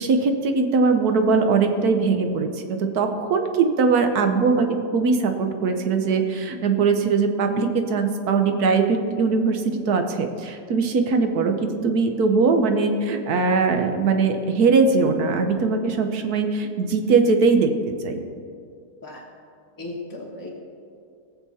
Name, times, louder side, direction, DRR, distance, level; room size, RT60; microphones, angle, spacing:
voice 1, 0.0-4.7 4.9-17.7 18.0-18.2, right 4 dB, 65° right, 6 dB, 1.3 m, -21 dB
voice 2, 19.8-20.5, left 2 dB, 15° left, -4 dB, 0.9 m, -35 dB
18.0 x 7.2 x 4.2 m, 2.3 s
omnidirectional pair, 1.8 m